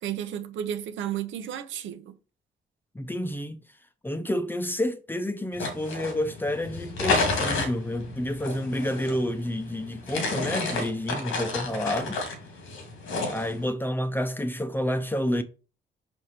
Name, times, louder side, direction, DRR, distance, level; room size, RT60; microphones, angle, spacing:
voice 1, 0.0-2.1, right 10 dB, 75° right, 0.9 m, -33 dB
voice 2, 2.9-3.6 4.0-12.2 13.3-15.4, left 1 dB, 10° left, 0.8 m, -29 dB
sound 1, 5.5-13.7, left 3 dB, 90° left, 2.2 m, -31 dB
5.4 x 4.9 x 4.3 m
cardioid pair, 90°, 20 cm